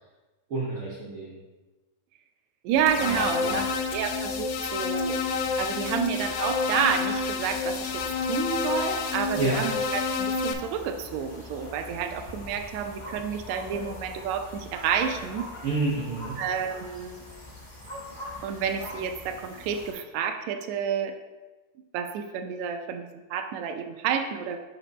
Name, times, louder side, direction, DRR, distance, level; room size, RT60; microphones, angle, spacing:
voice 1, 0.5-1.4 3.0-3.6 9.3-9.6 15.6-16.4, right 3 dB, 65° right, -6 dB, 1.3 m, -29 dB
voice 2, 2.6-5.2 5.6-8.0 8.3-15.5 16.4-17.2 18.4-21.1 21.9-24.6, right 7 dB, 80° right, 6 dB, 1.6 m, -30 dB
sound 1, 2.7-19.9, left 1 dB, 40° left, 0.6 m, -43 dB
sound 2, 2.9-10.5, left 5 dB, 80° left, 1.6 m, -29 dB
5.5 x 5.0 x 4.0 m, 1.2 s
omnidirectional pair, 3.7 m